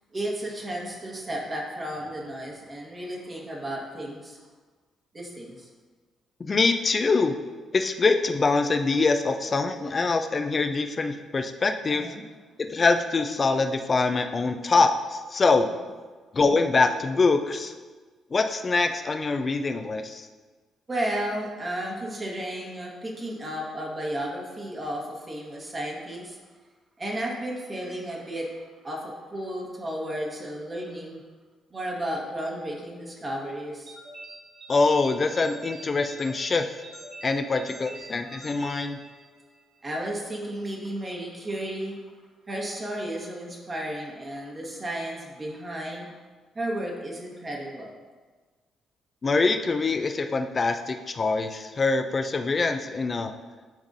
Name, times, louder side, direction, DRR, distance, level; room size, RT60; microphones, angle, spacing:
voice 1, 0.1-4.4 5.1-5.7 11.9-12.2 15.5-15.6 20.9-26.4 27.0-28.5 28.8-31.2 31.7-33.9 37.6-37.9 39.8-42.0 42.5-46.1 46.5-47.9, right 1 dB, 35° right, -2 dB, 1.4 m, -33 dB
voice 2, 6.4-7.4 7.7-12.1 12.6-15.7 16.3-17.7 18.3-20.3 34.7-36.7 37.2-39.0 49.2-53.3, left 3 dB, 40° left, 7 dB, 0.5 m, -24 dB
sound 1, 33.9-39.6, right 1 dB, 50° right, 1.3 m, -44 dB
10.0 x 3.6 x 2.7 m, 1.4 s
hypercardioid pair, 45°, 0 cm